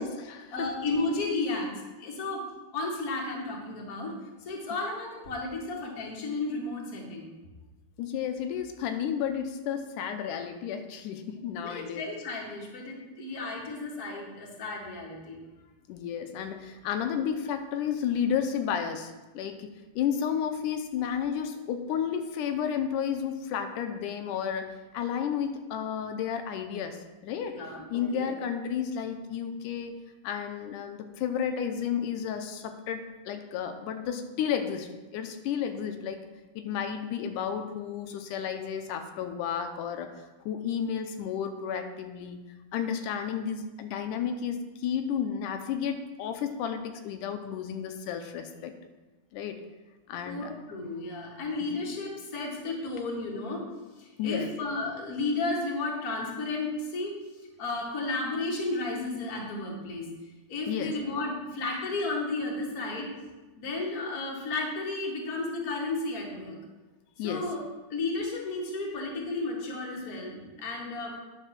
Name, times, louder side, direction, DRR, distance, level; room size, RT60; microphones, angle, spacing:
voice 1, 0.0-0.7 8.0-12.0 15.9-19.7 20.0-27.6 27.9-30.0 30.2-36.2 36.6-42.4 42.7-48.7 49.3-49.6 50.1-50.5 51.6-51.8 54.2-54.5 60.7-60.9 67.2-67.5, left 8 dB, 85° left, 7 dB, 2.2 m, -32 dB
voice 2, 0.5-1.7 2.0-2.4 2.7-4.1 4.4-7.3 11.6-15.4 27.5-28.3 50.2-53.6 54.0-57.2 57.6-60.1 60.5-63.1 63.5-66.5 67.2-67.6 67.9-71.1, left 2 dB, 35° left, -1 dB, 1.7 m, -33 dB
10.0 x 5.6 x 6.0 m, 1.2 s
omnidirectional pair, 3.6 m